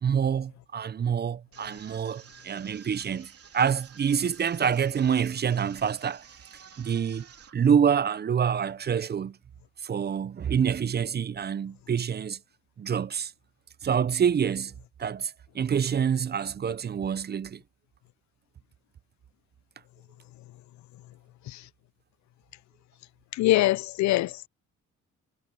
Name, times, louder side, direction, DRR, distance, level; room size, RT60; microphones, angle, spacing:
voice 1, 0.0-6.2 6.8-7.3 7.5-9.4 9.8-12.4 12.8-13.3 13.8-14.7 15.0-17.6, right 7 dB, 35° right, 0.6 m, -26 dB
sound 1, 1.5-7.5, right 7 dB, 50° right, 3.4 m, -52 dB
voice 2, 23.3-24.5, left 16 dB, 70° left, 0.4 m, -23 dB
cardioid pair, 90°, 30 cm